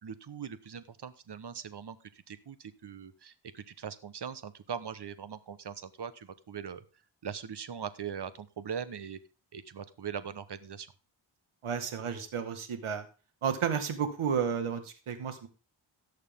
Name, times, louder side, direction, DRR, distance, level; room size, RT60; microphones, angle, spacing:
voice 1, 0.0-2.0 2.3-6.8 7.2-9.2 9.5-10.9, right 7 dB, 55° right, 13 dB, 1.3 m, -41 dB
voice 2, 11.6-13.1 13.4-15.5, right 7 dB, 85° right, 8 dB, 2.0 m, -32 dB
16.5 x 6.6 x 3.7 m, 0.34 s
cardioid pair, 65°, 49 cm